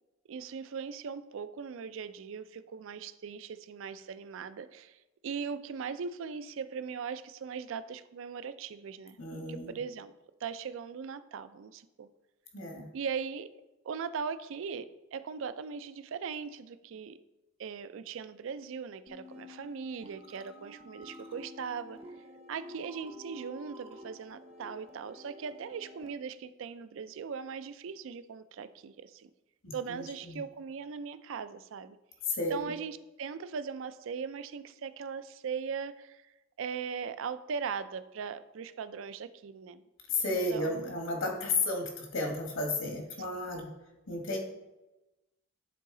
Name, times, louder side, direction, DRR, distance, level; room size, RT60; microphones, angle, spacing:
voice 1, 0.3-5.0 5.2-9.2 9.5-10.1 10.4-12.1 12.9-13.5 13.8-17.2 17.6-22.0 22.5-29.3 29.7-32.0 32.5-39.8 40.3-40.9, right 6 dB, 65° right, 13 dB, 0.4 m, -39 dB
voice 2, 9.2-9.8 12.5-12.9 29.6-30.4 32.4-32.7 40.1-43.7 44.1-44.4, left 2 dB, 65° left, 2 dB, 1.4 m, -33 dB
sound 1, 19.1-26.1, left 1 dB, 30° right, 0.7 m, -50 dB
9.2 x 4.0 x 3.8 m, 1.0 s
head